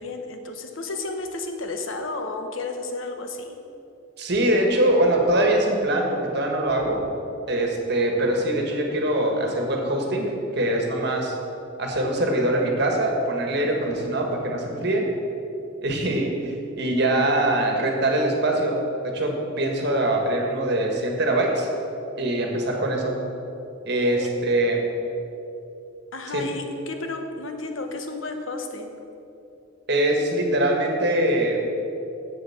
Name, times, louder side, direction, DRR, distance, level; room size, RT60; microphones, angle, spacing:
voice 1, 0.0-3.6 24.2-24.3 26.1-28.9, left 3 dB, 85° left, 5 dB, 1.1 m, -32 dB
voice 2, 4.2-7.1 7.5-11.3 11.8-15.1 15.8-18.8 19.1-21.7 22.2-23.2 23.9-24.8 26.3-26.5 29.9-31.6, right 1 dB, 55° right, 1 dB, 1.6 m, -23 dB
8.0 x 7.7 x 7.1 m, 2.8 s
head